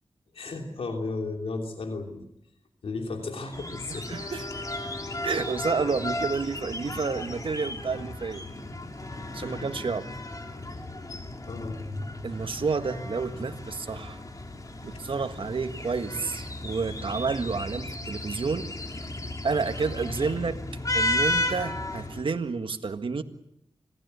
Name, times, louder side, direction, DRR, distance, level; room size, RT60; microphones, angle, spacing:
voice 1, 0.3-2.2 2.8-4.2 11.5-11.8, left 3 dB, 80° left, 3 dB, 3.3 m, -34 dB
sound 1, 3.5-22.2, left 1 dB, 35° left, 3.4 m, -34 dB
voice 2, 3.9-4.6 5.2-8.4 9.3-10.1 12.2-14.2 14.8-18.8 19.4-20.6 20.9-23.2, right 4 dB, 65° right, 7 dB, 1.8 m, -30 dB
26.5 x 18.5 x 8.3 m, 0.81 s
wide cardioid pair, 70°, 10 cm